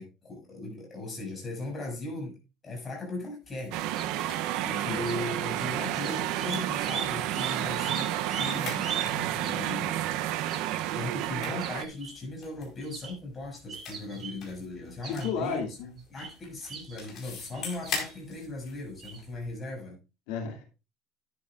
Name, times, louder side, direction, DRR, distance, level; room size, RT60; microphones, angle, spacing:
voice 1, 0.0-2.4 2.6-3.8 4.2-10.1 10.4-15.6 16.1-20.0, left 2 dB, 20° left, -1 dB, 6.2 m, -38 dB
sound 1, 3.4-19.5, left 5 dB, 40° left, 4.5 m, -45 dB
sound 2, 3.7-11.8, right 13 dB, 65° right, 0.7 m, -31 dB
sound 3, 3.9-4.3 4.9-5.4 5.7-5.8 6.0-9.1 9.4-9.8 10.5-10.8 11.2-11.3 11.6-12.1 12.8-13.1 13.7-14.4 15.0-15.3 16.0-16.3 16.7-17.0 17.5-18.2 19.0-19.2, right 7 dB, 30° right, 3.0 m, -39 dB
voice 2, 15.0-15.9 20.3-20.6, left 6 dB, 85° left, 2 dB, 2.5 m, -33 dB
11.5 x 9.7 x 2.5 m, 0.30 s
cardioid pair, 165°, 0 cm